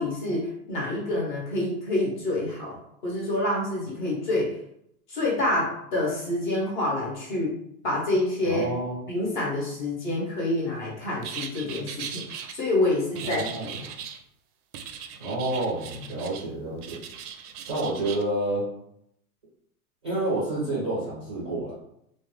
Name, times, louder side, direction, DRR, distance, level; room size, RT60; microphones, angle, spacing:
voice 1, 0.0-2.8 3.0-4.5 5.1-7.6 7.8-8.7 9.1-12.2 12.5-13.4, left 1 dB, 30° left, -3 dB, 0.6 m, -27 dB
voice 2, 8.5-9.0 13.2-13.8 15.2-17.0 17.7-18.7 20.0-21.7, right 2 dB, 20° right, -10 dB, 0.4 m, -29 dB
sound 1, 11.2-12.5 13.1-14.2 14.7-16.5 16.8-18.2, right 8 dB, 80° right, 0.5 m, -39 dB
2.4 x 2.1 x 2.9 m, 0.75 s
supercardioid pair, 170°, 45 cm